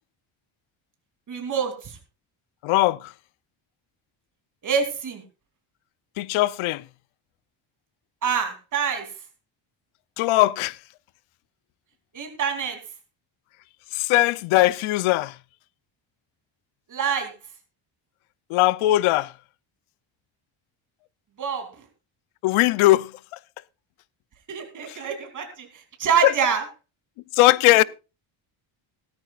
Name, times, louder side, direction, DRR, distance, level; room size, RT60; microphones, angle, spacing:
voice 1, 1.3-2.0 4.6-5.2 8.2-9.1 12.1-12.8 16.9-17.3 21.4-21.7 24.5-25.7 26.0-26.6, right 7 dB, 40° right, 3.0 m, -26 dB
voice 2, 2.6-3.1 6.2-6.8 10.2-10.8 13.9-15.4 18.5-19.3 22.4-23.1 24.9-25.0 26.2-26.3 27.3-27.8, left 18 dB, 85° left, 0.6 m, -19 dB
17.0 x 13.5 x 2.4 m
cardioid pair, 150°, 48 cm